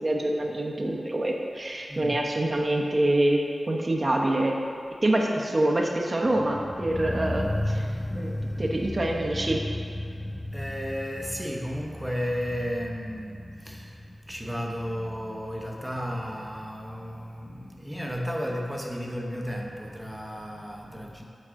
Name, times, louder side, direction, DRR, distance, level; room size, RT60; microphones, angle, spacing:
voice 1, 0.0-4.6 5.0-7.9 8.1-8.3 8.6-9.6, right 1 dB, 40° right, 0 dB, 0.9 m, -26 dB
voice 2, 1.9-2.2 10.4-21.2, equal, 5° right, -1 dB, 1.0 m, -33 dB
sound 1, 6.2-17.3 17.5-17.6, left 1 dB, 15° left, 0.4 m, -35 dB
7.9 x 4.7 x 3.7 m, 2.5 s
cardioid pair, 45°, 0 cm